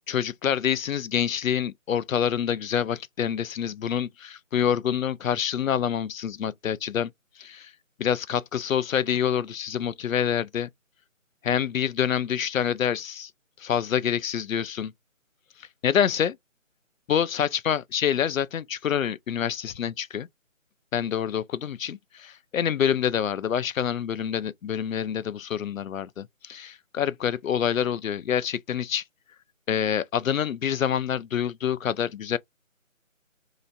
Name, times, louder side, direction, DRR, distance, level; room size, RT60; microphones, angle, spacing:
voice 1, 0.1-7.1 7.4-7.7 8.0-10.7 11.4-13.3 13.6-14.9 15.6-16.4 17.1-20.3 20.9-29.0 29.7-32.4, left 9 dB, 75° left, 0.5 m, -27 dB
3.2 x 2.9 x 2.5 m
figure-of-eight pair, 165°, 40 cm